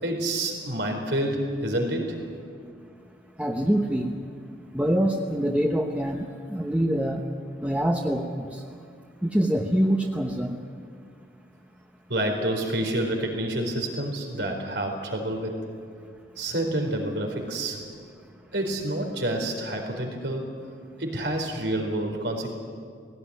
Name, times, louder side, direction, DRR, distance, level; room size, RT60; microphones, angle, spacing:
voice 1, 0.0-2.2 12.1-15.6 16.4-17.8 18.5-20.5 21.0-22.5, right 1 dB, 90° right, 3 dB, 4.3 m, -28 dB
voice 2, 3.4-4.2 4.7-7.2 7.6-8.6 9.2-10.6, equal, 10° right, 1 dB, 1.0 m, -25 dB
18.5 x 17.0 x 9.9 m, 2.2 s
head